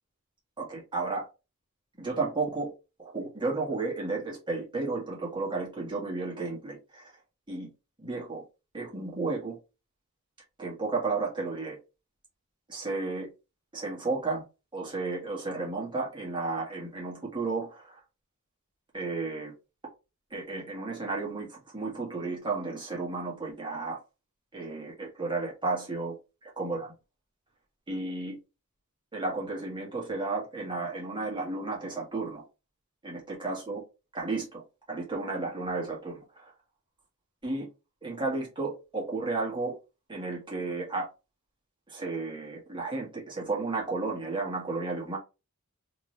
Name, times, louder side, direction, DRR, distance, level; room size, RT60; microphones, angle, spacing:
voice 1, 0.6-1.3 2.0-2.7 3.0-7.1 7.5-7.7 8.0-8.4 8.7-9.6 10.6-11.8 12.7-13.3 13.7-14.4 14.7-18.0 18.9-19.5 20.3-24.0 24.5-26.2 26.6-26.9 27.9-28.4 29.1-32.4 33.0-33.8 34.1-34.6 34.9-36.5 37.4-37.7 38.0-39.8 40.1-41.1 41.9-45.2, right 3 dB, 20° right, 1.7 m, -33 dB
3.6 x 3.0 x 3.2 m
head